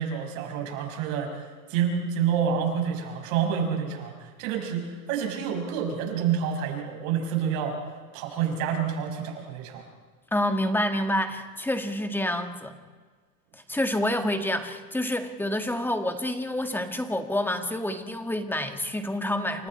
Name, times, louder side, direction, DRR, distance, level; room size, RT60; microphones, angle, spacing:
voice 1, 0.0-7.8 8.1-9.9, right 7 dB, 60° right, 2 dB, 6.0 m, -28 dB
voice 2, 10.3-12.7 13.5-19.7, left 1 dB, 5° left, 6 dB, 1.7 m, -28 dB
29.0 x 26.0 x 4.4 m, 1.5 s
supercardioid pair, 130°, 45 cm